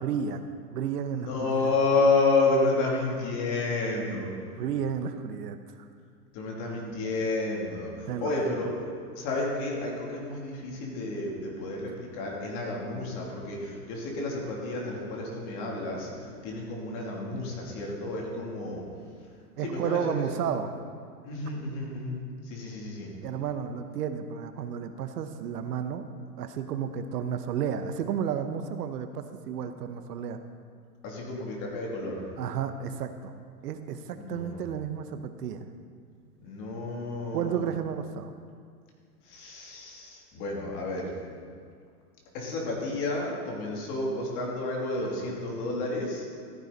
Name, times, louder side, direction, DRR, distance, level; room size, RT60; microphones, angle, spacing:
voice 1, 0.0-0.4 0.7-1.7 4.6-5.9 8.1-8.7 19.6-20.7 23.2-26.1 26.4-30.4 32.4-33.3 33.6-35.6 37.3-38.3, right 8 dB, 70° right, 9 dB, 1.0 m, -32 dB
voice 2, 1.1-4.3 6.3-8.7 9.1-16.1 16.4-18.8 19.6-20.0 20.4-20.5 21.2-22.2 22.4-23.1 31.0-32.2 34.1-34.7 36.4-37.7 39.3-41.1 42.3-46.2, left 3 dB, 40° left, -2 dB, 2.8 m, -30 dB
14.5 x 9.1 x 4.0 m, 2.1 s
hypercardioid pair, 135°, 48 cm